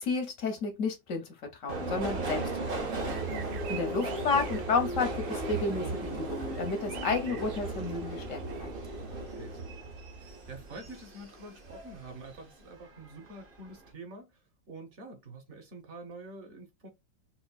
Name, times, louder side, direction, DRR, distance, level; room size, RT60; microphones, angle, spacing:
voice 1, 0.0-2.4 2.8-3.1 3.7-8.7, left 4 dB, 65° left, 0.8 m, -32 dB
Subway metro underground, 1.7-12.4 12.8-13.5 13.8-13.9, right 2 dB, 60° right, 0.5 m, -36 dB
sound 1, 1.7-8.8, right 6 dB, 75° right, 1.3 m, -47 dB
voice 2, 9.0-16.9, right 2 dB, 45° right, 1.1 m, -47 dB
4.3 x 2.4 x 2.3 m
omnidirectional pair, 2.1 m